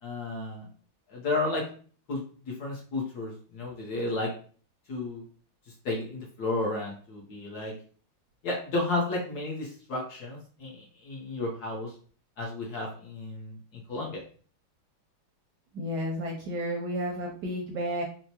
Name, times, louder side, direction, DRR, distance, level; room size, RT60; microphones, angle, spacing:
voice 1, 0.0-0.7 1.1-1.6 2.1-4.3 4.9-5.2 5.8-7.7 8.4-11.9 12.4-14.2, left 2 dB, 60° left, -2 dB, 1.2 m, -32 dB
voice 2, 15.7-18.0, equal, 75° right, 0 dB, 1.0 m, -32 dB
4.4 x 2.1 x 2.8 m, 0.43 s
omnidirectional pair, 2.2 m